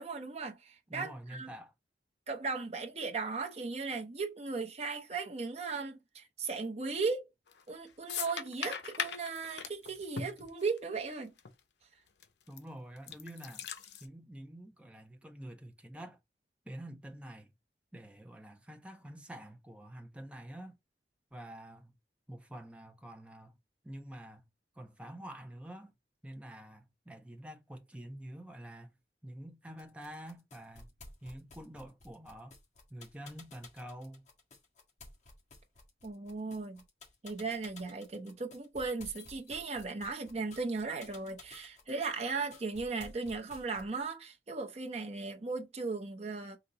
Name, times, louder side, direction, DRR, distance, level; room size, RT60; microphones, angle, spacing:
voice 1, 0.0-1.5 2.3-7.3 7.7-11.3 36.0-36.8 37.2-46.6, right 4 dB, 35° right, 0.8 m, -37 dB
voice 2, 0.9-1.7 12.5-13.7 14.0-16.2 16.7-17.5 17.9-20.8 21.3-21.9 22.3-23.5 23.8-24.4 24.8-25.9 26.2-28.9 29.2-30.8 31.2-32.6 32.9-34.3, right 1 dB, 5° right, 0.6 m, -47 dB
sound 1, 7.5-7.7 8.1-11.1 11.4-11.5 12.2-12.6 13.0-14.0, left 6 dB, 80° left, 0.7 m, -39 dB
sound 2, 29.8-44.0, left 3 dB, 40° left, 1.6 m, -54 dB
4.0 x 2.9 x 4.0 m
head